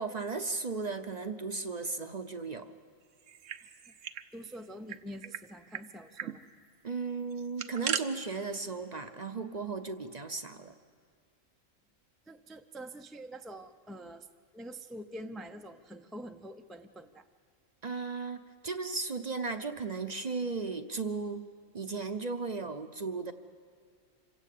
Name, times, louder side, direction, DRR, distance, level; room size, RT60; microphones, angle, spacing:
voice 1, 0.0-2.7 6.8-10.7 17.8-21.4 21.7-23.3, right 4 dB, 40° right, 8 dB, 0.8 m, -36 dB
sound 1, 3.2-4.3 4.5-4.6 4.9-5.4 5.7-5.8 6.2-6.4 7.3-8.0, right 9 dB, 70° right, 1.1 m, -37 dB
voice 2, 4.3-6.4 12.3-14.3 14.5-17.3, right 1 dB, ahead, 5 dB, 0.5 m, -45 dB
26.0 x 16.5 x 8.4 m, 2.1 s
omnidirectional pair, 1.3 m